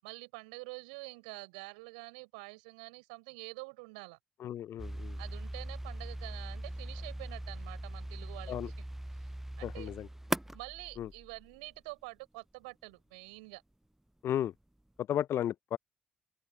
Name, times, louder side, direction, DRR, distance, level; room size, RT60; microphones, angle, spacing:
voice 1, 0.0-4.2 5.2-8.7 9.1-9.3 9.6-9.9 10.5-13.6, right 29 dB, 75° right, 6.6 m, -47 dB
voice 2, 4.4-5.2 8.5-8.7 9.6-10.1 11.0-11.1 14.2-14.5 15.0-15.8, left 11 dB, 60° left, 1.0 m, -34 dB
sound 1, 4.8-11.8, right 1 dB, 5° right, 0.8 m, -40 dB
figure-of-eight pair, 40°, 5 cm